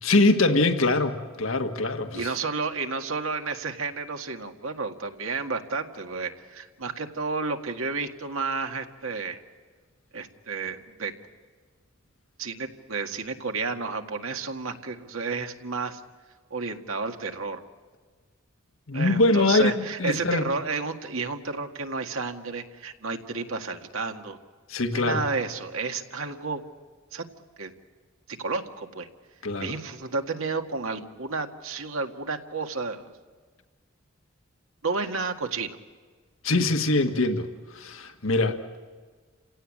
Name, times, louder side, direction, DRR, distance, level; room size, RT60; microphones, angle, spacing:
voice 1, 0.0-2.3 18.9-20.4 24.7-25.2 29.4-29.7 36.4-37.5 37.7-38.6, left 2 dB, 80° left, 7 dB, 1.7 m, -23 dB
voice 2, 2.1-9.4 10.1-11.1 12.4-16.0 16.5-17.6 18.9-24.4 24.9-26.6 27.1-27.2 27.6-27.7 28.3-29.1 29.6-33.1 34.8-35.8, right 4 dB, 85° right, 5 dB, 2.0 m, -31 dB
30.0 x 17.0 x 8.8 m, 1.5 s
head